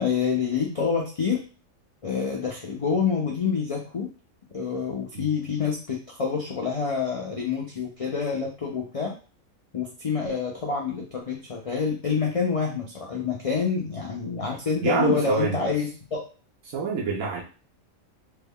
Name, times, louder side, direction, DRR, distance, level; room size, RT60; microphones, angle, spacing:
voice 1, 0.0-1.4 2.0-4.1 4.5-9.1 9.7-16.2, left 5 dB, 55° left, -1 dB, 0.3 m, -27 dB
voice 2, 14.8-15.6 16.7-17.4, right 5 dB, 85° right, -3 dB, 1.2 m, -26 dB
3.4 x 2.3 x 3.5 m, 0.36 s
omnidirectional pair, 1.4 m